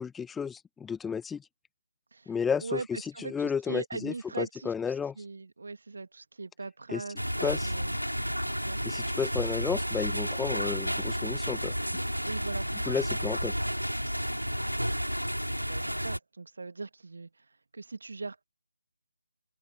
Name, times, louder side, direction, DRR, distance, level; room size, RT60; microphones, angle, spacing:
voice 1, 0.0-1.4 2.3-5.1 6.9-7.0 7.4-7.7 8.8-11.7 12.9-13.5, left 6 dB, 5° left, 1.5 m, -32 dB
voice 2, 2.1-4.7 5.2-7.2 7.6-8.0 8.6-8.8 12.2-12.9 15.6-17.5 17.7-18.4, right 3 dB, 50° right, 2.3 m, -40 dB
sound 1, 7.2-16.2, equal, 90° right, 5.2 m, -31 dB
open air
figure-of-eight pair, 150°, 0 cm